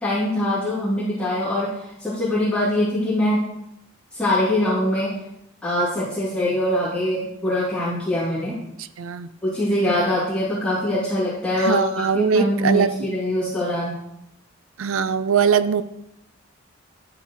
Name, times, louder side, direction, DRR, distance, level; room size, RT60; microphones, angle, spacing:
voice 1, 0.0-3.4 4.1-5.1 5.6-8.6 9.4-14.0, left 1 dB, 5° left, -12 dB, 2.8 m, -23 dB
voice 2, 9.0-9.3 11.5-13.1 14.8-15.8, right 6 dB, 80° right, 14 dB, 0.5 m, -21 dB
11.0 x 8.1 x 3.1 m, 0.83 s
head